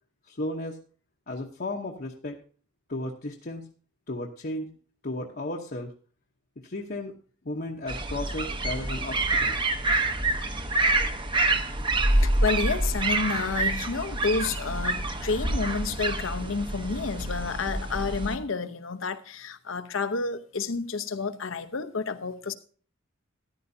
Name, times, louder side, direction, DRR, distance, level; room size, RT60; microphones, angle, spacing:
voice 1, 0.2-0.8 1.3-2.4 2.9-3.7 4.1-4.7 5.0-5.9 6.6-7.1 7.4-9.6, left 1 dB, 50° left, 0.9 m, -34 dB
sound 1, 7.9-18.4, right 2 dB, 25° right, 0.9 m, -27 dB
voice 2, 12.1-22.5, left 4 dB, 80° left, 0.8 m, -30 dB
14.0 x 10.5 x 2.7 m
head